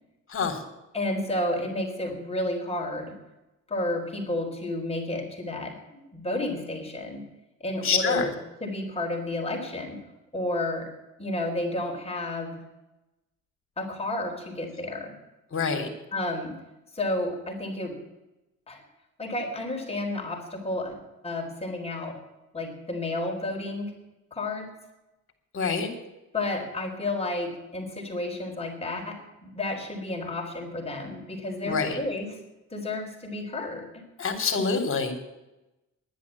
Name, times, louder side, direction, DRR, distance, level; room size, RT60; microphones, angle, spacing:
voice 1, 0.3-0.6 7.8-8.3 15.5-15.9 25.5-25.9 31.6-32.0 34.2-35.2, left 5 dB, 45° left, 6 dB, 3.5 m, -26 dB
voice 2, 0.9-3.1 3.7-7.2 7.6-8.3 8.6-10.0 10.3-10.9 11.2-12.6 13.8-15.1 16.1-16.5 16.9-18.0 18.7-18.8 19.2-22.2 22.5-23.9 24.3-24.7 26.3-32.4 32.7-34.0, left 1 dB, 20° left, 1 dB, 4.0 m, -31 dB
11.0 x 10.5 x 9.8 m, 0.97 s
cardioid pair, 90°, 30 cm